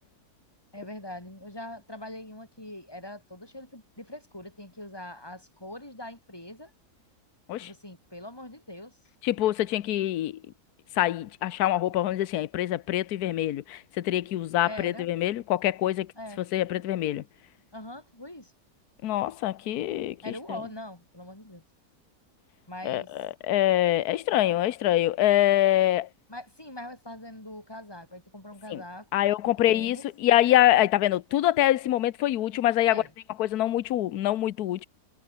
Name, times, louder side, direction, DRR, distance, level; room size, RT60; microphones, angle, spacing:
voice 1, 0.7-6.7 7.6-9.0 14.6-15.1 16.2-16.4 17.7-18.5 20.2-21.6 22.7-23.1 26.3-29.1 29.6-30.0 32.9-33.1, left 1 dB, 15° left, 5.1 m, -42 dB
voice 2, 9.2-10.4 11.0-16.1 16.4-17.2 19.0-20.2 22.8-26.1 28.7-28.8 29.1-33.0 33.4-34.8, left 13 dB, 70° left, 1.3 m, -25 dB
omnidirectional pair, 1.7 m